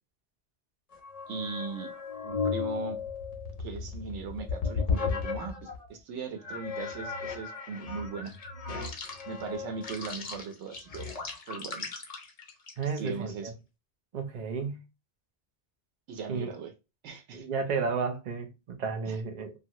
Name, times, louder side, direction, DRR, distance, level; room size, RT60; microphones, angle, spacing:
sound 1, 0.9-5.9 6.4-13.1, left 5 dB, 45° left, 0.6 m, -35 dB
voice 1, 1.3-1.9 2.2-3.0 3.6-8.3 9.3-11.1 11.5-11.9 12.8-13.5 16.1-16.7 17.0-17.5 19.0-19.2, right 5 dB, 90° right, 1.0 m, -39 dB
voice 2, 12.8-13.5 14.1-14.8 16.3-16.5 17.3-19.5, right 5 dB, 50° right, 0.6 m, -32 dB
2.7 x 2.4 x 2.9 m
omnidirectional pair, 1.1 m